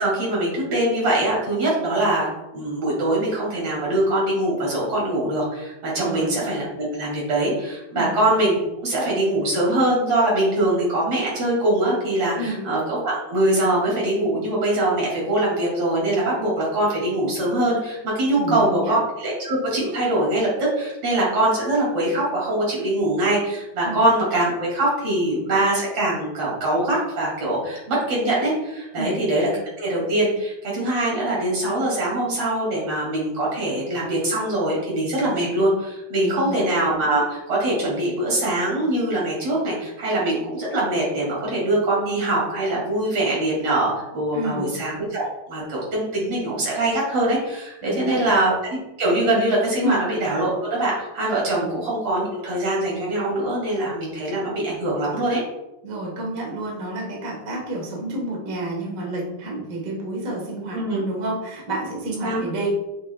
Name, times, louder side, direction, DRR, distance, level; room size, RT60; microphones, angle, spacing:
voice 1, 0.0-2.3 2.5-29.5 29.8-55.4 60.7-61.0 62.2-62.4, right 1 dB, 40° right, -5 dB, 3.3 m, -23 dB
voice 2, 5.9-6.4 7.9-8.1 12.4-12.6 18.3-19.0 23.8-24.0 28.9-29.2 36.2-36.6 44.3-44.7 47.8-48.3 49.8-50.0 55.8-62.7, right 1 dB, 80° right, -2 dB, 0.7 m, -30 dB
7.6 x 6.8 x 2.4 m, 0.99 s
omnidirectional pair, 4.1 m